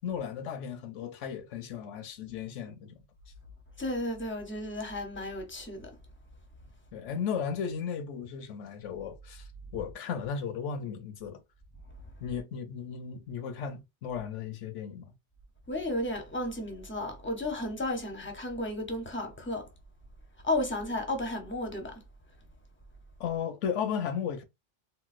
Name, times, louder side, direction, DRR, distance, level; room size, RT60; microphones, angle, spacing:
voice 1, 0.0-3.0 6.9-9.5 9.7-11.4 12.2-15.1 23.2-24.4, left 7 dB, 85° left, 1.0 m, -35 dB
voice 2, 3.8-5.9 15.7-19.7 20.4-22.0, left 1 dB, 15° left, 0.5 m, -33 dB
3.9 x 2.2 x 2.4 m
omnidirectional pair, 1.2 m